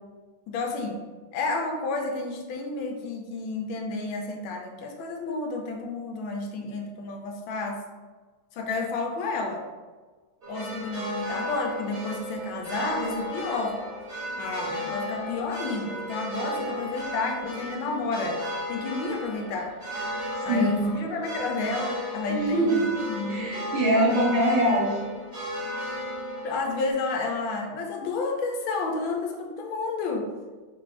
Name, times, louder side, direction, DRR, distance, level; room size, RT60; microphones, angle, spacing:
voice 1, 0.5-1.0 1.3-7.8 8.5-9.7 10.5-13.8 14.4-18.4 18.7-19.8 20.4-23.5 23.9-24.3 26.4-30.3, left 3 dB, 85° left, 2 dB, 1.4 m, -31 dB
sound 1, 10.4-26.9, equal, 40° right, 1.1 m, -35 dB
voice 2, 20.5-20.8 22.3-22.9 23.3-25.0, right 1 dB, 75° right, -4 dB, 1.7 m, -23 dB
5.4 x 2.5 x 3.2 m, 1.4 s
omnidirectional pair, 2.2 m